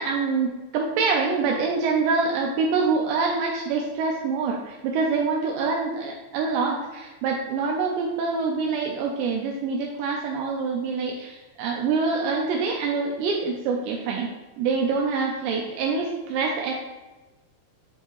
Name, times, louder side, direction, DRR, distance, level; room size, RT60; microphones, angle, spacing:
voice 1, 0.0-14.3 14.6-16.7, right 4 dB, 85° right, 0 dB, 2.5 m, -25 dB
7.9 x 4.3 x 3.0 m, 1.2 s
omnidirectional pair, 5.6 m